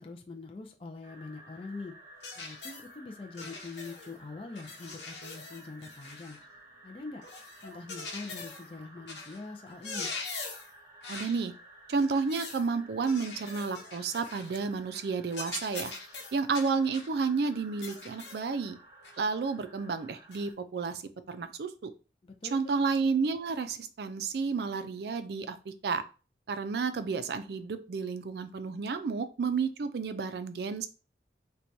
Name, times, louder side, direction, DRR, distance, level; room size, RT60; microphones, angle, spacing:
voice 1, 0.0-1.9 2.4-6.4 6.8-7.2 7.6-10.1 22.2-22.8, left 3 dB, 30° left, 2 dB, 0.4 m, -43 dB
sound 1, 1.0-20.5, right 1 dB, 20° right, 0.8 m, -55 dB
sound 2, 2.2-2.9 3.4-4.1 4.6-6.4 7.2-8.7 9.1-9.4 9.7-10.7 11.0-11.4 12.0-12.7 13.1-14.7 14.9-15.1 15.3-17.1 17.8-18.5 19.0-19.2 20.3-20.4, left 4 dB, 85° left, 0.9 m, -42 dB
voice 2, 11.1-11.5 11.9-15.9 16.3-18.8 19.2-21.0 21.3-21.9 22.5-26.0 26.5-30.9, right 4 dB, 65° right, 10 dB, 0.4 m, -31 dB
4.3 x 2.2 x 2.6 m, 0.35 s
head